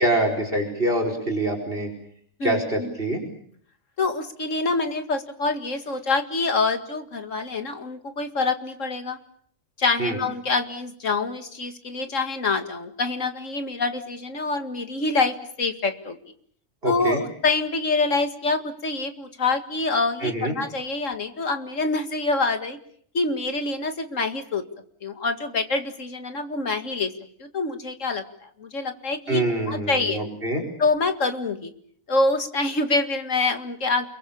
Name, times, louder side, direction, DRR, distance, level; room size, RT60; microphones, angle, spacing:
voice 1, 0.0-1.9 2.4-3.2 10.0-10.2 16.8-17.2 20.2-20.5 29.3-30.6, right 1 dB, 45° right, 3 dB, 5.2 m, -25 dB
voice 2, 2.4-2.9 4.0-9.2 9.8-16.2 16.8-22.8 23.1-24.6 25.0-27.1 27.4-30.2 30.8-31.7 32.1-34.1, left 3 dB, 65° left, 8 dB, 2.4 m, -26 dB
29.5 x 22.5 x 7.1 m, 0.64 s
omnidirectional pair, 1.4 m